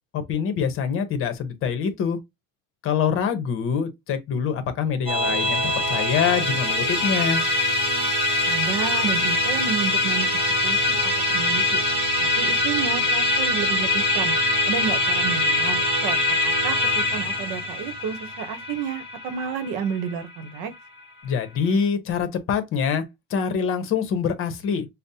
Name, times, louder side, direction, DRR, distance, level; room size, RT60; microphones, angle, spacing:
voice 1, 0.1-2.2 2.8-5.6 5.9-7.4 21.2-23.0 23.3-24.9, left 7 dB, 40° left, 0.9 m, -25 dB
Musical instrument, 5.1-20.6, left 2 dB, 15° right, 1.4 m, -23 dB
voice 2, 8.5-10.3 10.6-11.8 12.4-14.3 14.7-16.2 16.4-20.7, right 7 dB, 65° right, 0.9 m, -31 dB
5.1 x 2.1 x 2.7 m
cardioid pair, 150°, 33 cm